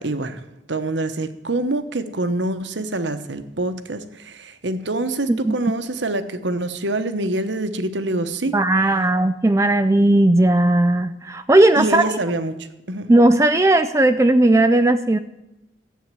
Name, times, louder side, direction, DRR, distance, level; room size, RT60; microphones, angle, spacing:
voice 1, 0.0-8.5 11.8-12.6 12.9-13.1, right 2 dB, 75° right, 10 dB, 1.2 m, -25 dB
voice 2, 8.5-12.1 13.1-15.2, right 1 dB, 15° right, 10 dB, 0.4 m, -16 dB
14.0 x 8.6 x 7.7 m, 0.97 s
head